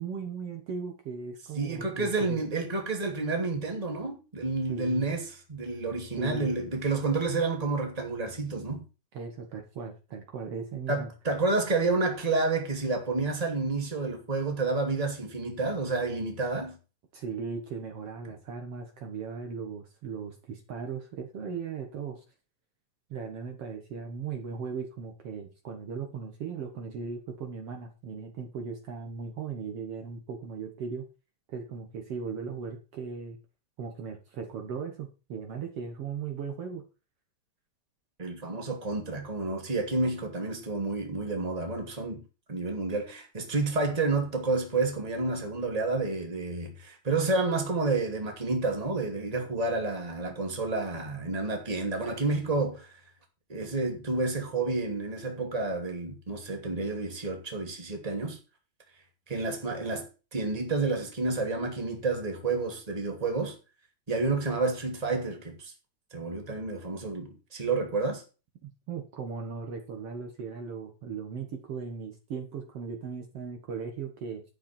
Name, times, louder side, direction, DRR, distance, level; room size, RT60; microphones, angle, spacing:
voice 1, 0.0-2.4 4.7-5.1 6.2-6.6 9.1-11.1 17.1-22.2 23.1-31.1 31.5-33.4 33.8-36.8 68.6-74.4, right 5 dB, 60° right, 2.3 m, -38 dB
voice 2, 1.5-8.8 10.9-16.8 38.2-42.2 42.5-52.9 53.5-58.4 59.3-63.6 64.1-65.7 66.1-68.2, right 3 dB, 15° right, 2.4 m, -30 dB
12.0 x 8.4 x 4.5 m
omnidirectional pair, 3.3 m